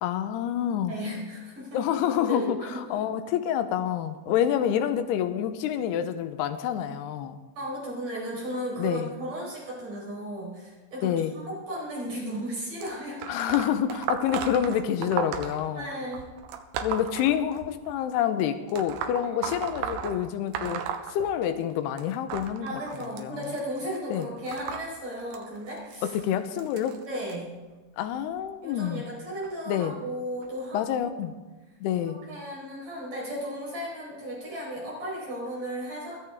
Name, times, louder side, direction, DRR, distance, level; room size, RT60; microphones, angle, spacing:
voice 1, 0.0-0.9 1.7-7.4 8.8-9.1 11.0-11.3 13.3-15.9 16.8-20.8 21.1-23.4 24.1-24.3 26.0-27.0 28.0-29.0 29.7-29.9 30.7-31.3 31.8-32.2, left 10 dB, 75° left, 9 dB, 2.7 m, -27 dB
voice 2, 0.9-1.8 2.3-3.1 7.6-13.2 15.7-16.3 19.2-19.4 22.6-26.2 27.0-27.6 28.6-31.1 32.0-36.2, equal, 45° right, -5 dB, 6.1 m, -35 dB
sound 1, 12.8-17.9 18.7-21.7 22.0-27.3 28.1-28.4 29.4-29.5 30.4-30.5 31.2-31.3, right 8 dB, 85° right, 3.3 m, -36 dB
23.0 x 14.0 x 3.6 m, 1.2 s
omnidirectional pair, 5.2 m